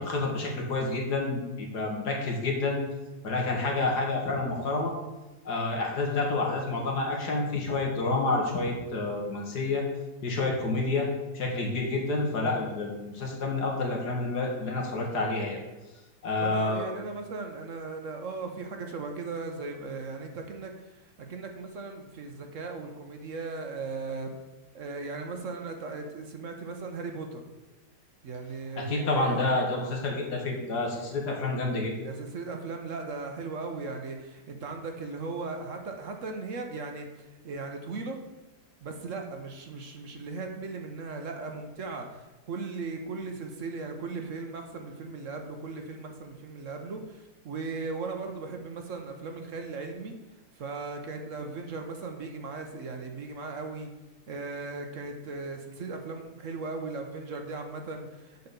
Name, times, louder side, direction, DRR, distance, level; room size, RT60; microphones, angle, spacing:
voice 1, 0.0-2.8 3.2-4.9 5.5-9.8 10.2-11.1 11.3-15.6 16.2-16.8 28.8-31.9, left 2 dB, 85° left, 0 dB, 2.2 m, -29 dB
voice 2, 16.4-24.3 24.7-27.4 28.2-29.5 32.0-38.2 38.8-50.1 50.6-53.9 54.3-58.5, right 3 dB, 55° right, 4 dB, 1.2 m, -37 dB
8.1 x 4.2 x 6.8 m, 1.1 s
omnidirectional pair, 1.7 m